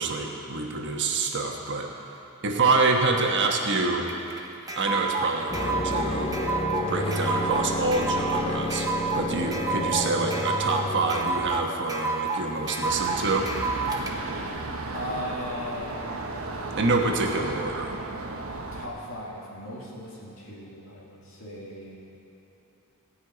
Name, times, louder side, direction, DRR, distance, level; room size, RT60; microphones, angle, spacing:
voice 1, 0.0-1.9 2.4-4.1 4.8-6.4 6.9-8.9 9.1-13.5 16.7-18.0, right 3 dB, 60° right, 2 dB, 1.3 m, -26 dB
sound 1, 4.1-14.1, right 4 dB, 20° right, 1.0 m, -30 dB
sound 2, 5.5-11.8, left 1 dB, 30° left, 0.8 m, -30 dB
sound 3, 12.8-18.9, right 2 dB, 85° right, 1.2 m, -34 dB
voice 2, 14.9-15.9 18.7-22.0, left 1 dB, 75° left, -5 dB, 2.6 m, -37 dB
16.5 x 5.7 x 9.0 m, 3.0 s
head